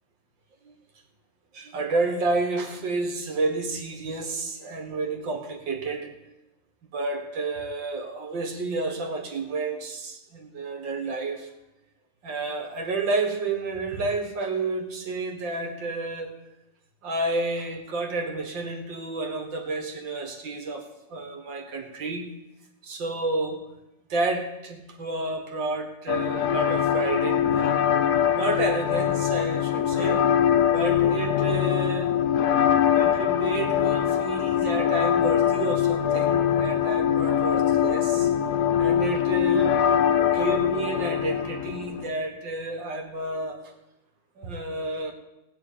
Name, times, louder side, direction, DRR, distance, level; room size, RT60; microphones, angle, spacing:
voice 1, 1.5-6.2 6.9-11.5 12.2-16.4 17.0-22.3 22.8-23.7 24.1-27.8 28.3-30.3 30.7-32.2 32.9-38.3 38.7-39.8 40.3-43.7 44.4-45.1, right 2 dB, 70° right, 5 dB, 2.4 m, -30 dB
sound 1, 26.1-42.1, left 9 dB, 65° left, 1.2 m, -23 dB
16.5 x 6.3 x 9.4 m, 0.95 s
omnidirectional pair, 2.1 m